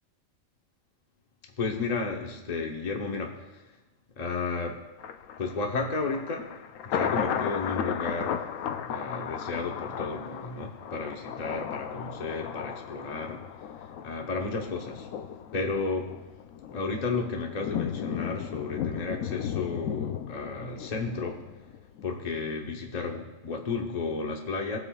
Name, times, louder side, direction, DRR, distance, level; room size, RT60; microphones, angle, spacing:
voice 1, 1.6-3.8 4.2-4.9 5.4-6.6 6.8-8.4 8.8-15.1 15.5-16.2 16.7-21.5 22.0-24.8, left 4 dB, 35° left, 2 dB, 1.0 m, -33 dB
Thunder, 5.0-22.1 22.5-22.6, left 8 dB, 85° left, 1.0 m, -35 dB
19.5 x 8.1 x 2.4 m, 1.1 s
omnidirectional pair, 1.4 m